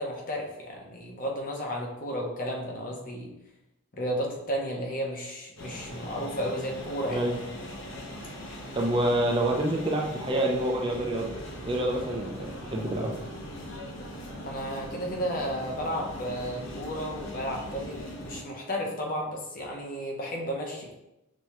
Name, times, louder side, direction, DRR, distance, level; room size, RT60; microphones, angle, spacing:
voice 1, 0.0-3.3 3.9-7.3 14.4-20.9, equal, 40° left, 0 dB, 0.7 m, -33 dB
sound 1, 5.6-18.4, equal, 75° left, 0.8 m, -40 dB
voice 2, 8.7-11.3 11.6-13.1, right 1 dB, 25° right, 0 dB, 0.4 m, -27 dB
6.1 x 2.2 x 2.9 m, 0.93 s
head